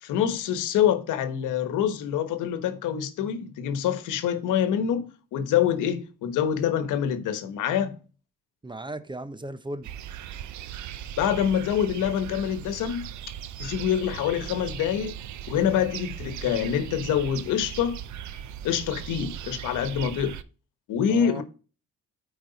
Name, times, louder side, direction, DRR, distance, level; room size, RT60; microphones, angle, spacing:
voice 1, 0.0-8.0 11.2-13.1 13.6-15.2 15.5-18.0 18.6-20.4 20.9-21.4, left 9 dB, 90° left, 1.2 m, -26 dB
voice 2, 8.6-9.9 21.1-21.4, right 1 dB, 15° right, 0.8 m, -36 dB
sound 1, 9.8-20.4, right 10 dB, 70° right, 0.7 m, -38 dB
9.0 x 4.8 x 4.0 m
cardioid pair, 90°, 30 cm